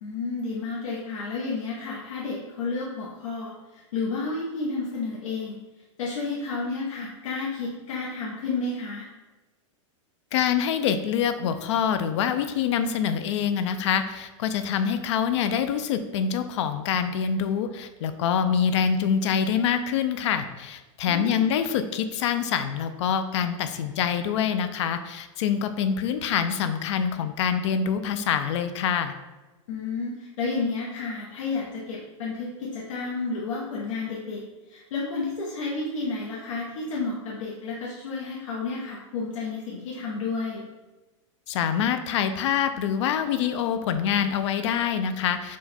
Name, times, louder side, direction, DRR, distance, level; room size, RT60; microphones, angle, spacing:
voice 1, 0.0-5.6 6.0-9.1 21.1-21.5 29.7-34.4 34.7-40.6, left 3 dB, 85° left, -5 dB, 0.9 m, -31 dB
voice 2, 10.3-29.1 41.5-45.6, left 8 dB, 65° left, 9 dB, 0.4 m, -25 dB
4.5 x 2.2 x 4.2 m, 1.1 s
supercardioid pair, 155°, 16 cm